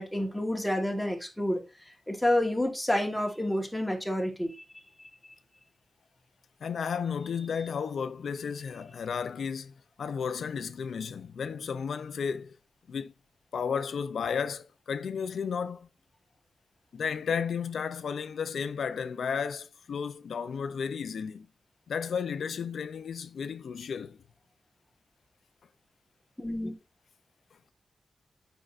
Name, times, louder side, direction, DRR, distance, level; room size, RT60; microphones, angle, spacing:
voice 1, 0.0-1.6 2.1-4.5 26.4-26.7, left 1 dB, ahead, 1.4 m, -29 dB
voice 2, 6.6-9.7 10.0-12.5 12.9-13.1 13.5-15.9 16.9-21.5 21.9-24.2, left 6 dB, 70° left, 0.5 m, -33 dB
8.8 x 5.4 x 2.5 m
wide cardioid pair, 165°, 0 cm